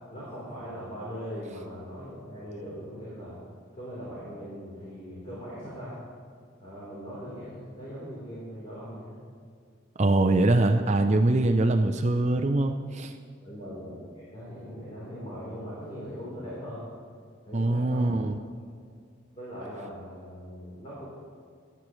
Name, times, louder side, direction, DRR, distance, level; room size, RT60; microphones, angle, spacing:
voice 1, 0.1-3.4 3.7-6.0 6.6-9.2 13.4-16.9 17.4-18.1 19.3-21.1, equal, 30° left, -9 dB, 3.7 m, -40 dB
voice 2, 10.0-13.1 17.5-18.4, right 2 dB, 35° right, 6 dB, 0.5 m, -23 dB
18.0 x 12.0 x 3.2 m, 2.2 s
head